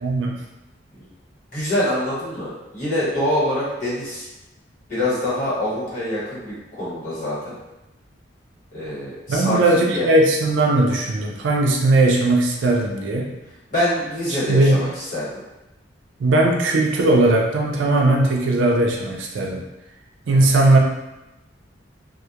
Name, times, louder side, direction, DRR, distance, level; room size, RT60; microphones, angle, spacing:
voice 1, 0.0-0.4 9.3-13.3 14.5-14.8 16.2-19.6 20.3-20.8, right 2 dB, 75° right, 0 dB, 0.4 m, -18 dB
voice 2, 1.5-4.3 4.9-7.6 8.7-10.1 13.7-15.3 20.3-20.4, left 1 dB, 45° left, -10 dB, 1.2 m, -25 dB
2.2 x 2.1 x 2.8 m, 0.98 s
head